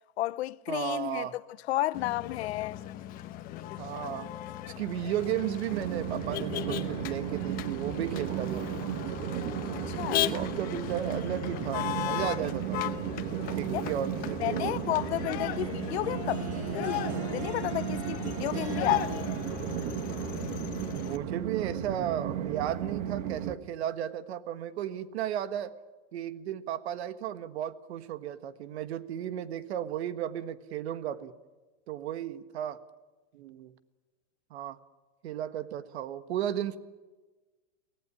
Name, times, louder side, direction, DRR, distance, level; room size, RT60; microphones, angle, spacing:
voice 1, 0.2-2.8 9.7-10.3 13.7-13.8 14.4-19.4, left 15 dB, 65° left, 0.8 m, -32 dB
voice 2, 0.7-1.3 3.8-4.3 4.8-8.7 10.0-12.9 13.4-14.7 20.9-25.7 26.1-31.3 31.9-32.8 33.3-33.7 34.5-34.8 35.2-36.8, right 11 dB, 65° right, 1.5 m, -34 dB
Motor vehicle (road), 1.9-21.2, left 13 dB, 25° left, 1.0 m, -37 dB
Train, 5.7-23.6, right 10 dB, 35° right, 1.3 m, -34 dB
Harp, 14.9-20.7, equal, 85° right, 6.1 m, -44 dB
23.5 x 19.0 x 10.0 m
supercardioid pair, 165°, 35 cm